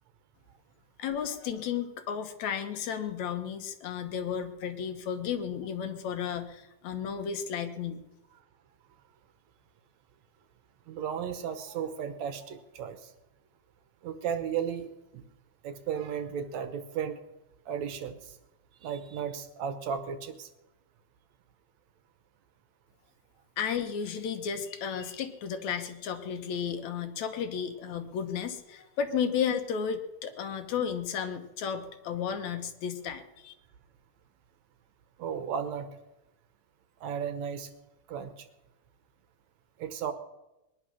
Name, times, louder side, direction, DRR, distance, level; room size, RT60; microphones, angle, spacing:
voice 1, 1.0-8.0 23.6-33.5, left 7 dB, 70° left, 8 dB, 2.3 m, -33 dB
voice 2, 10.9-13.1 14.0-15.3 15.6-17.2 17.7-18.4 18.8-20.5 35.2-35.9 37.0-37.7 38.1-38.5 39.8-40.1, right 7 dB, 70° right, 10 dB, 2.2 m, -34 dB
20.5 x 10.5 x 6.2 m, 0.99 s
omnidirectional pair, 3.5 m